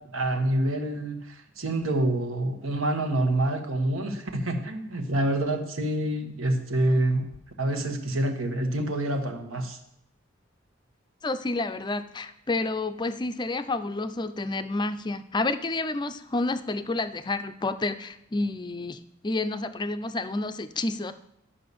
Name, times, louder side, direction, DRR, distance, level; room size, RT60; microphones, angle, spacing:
voice 1, 0.1-7.2 7.6-9.8, right 1 dB, 85° right, 5 dB, 1.4 m, -27 dB
voice 2, 11.2-21.1, left 2 dB, 20° left, 11 dB, 0.5 m, -30 dB
11.5 x 5.7 x 6.9 m, 0.78 s
head